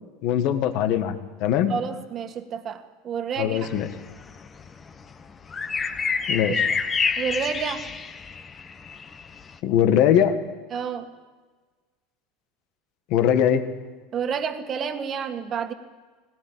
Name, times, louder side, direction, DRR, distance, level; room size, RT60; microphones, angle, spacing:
voice 1, 0.2-1.2 1.4-1.7 3.4-3.9 6.3-6.6 9.6-10.4 13.1-13.6, left 9 dB, 60° left, 8 dB, 1.7 m, -21 dB
voice 2, 1.7-3.6 6.5-6.7 7.2-7.9 10.7-11.1 14.1-15.7, right 7 dB, 35° right, 7 dB, 1.9 m, -29 dB
sound 1, 3.6-9.6, left 5 dB, 25° left, 1.2 m, -28 dB
19.5 x 17.5 x 8.9 m, 1.4 s
supercardioid pair, 125°, 0 cm